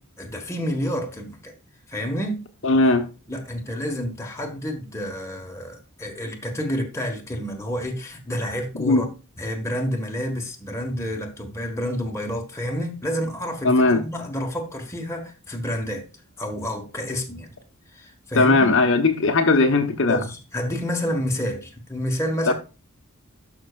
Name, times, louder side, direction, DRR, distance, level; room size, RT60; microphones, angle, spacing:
voice 1, 0.2-1.5 1.9-2.4 3.3-9.1 9.4-16.0 16.4-17.5 17.9-18.8 20.1-22.5, equal, 10° left, 1.5 m, -29 dB
voice 2, 2.6-3.1 8.8-9.1 13.6-14.0 18.3-20.3 22.5-22.6, left 3 dB, 60° left, 1.1 m, -18 dB
12.0 x 5.8 x 2.4 m
head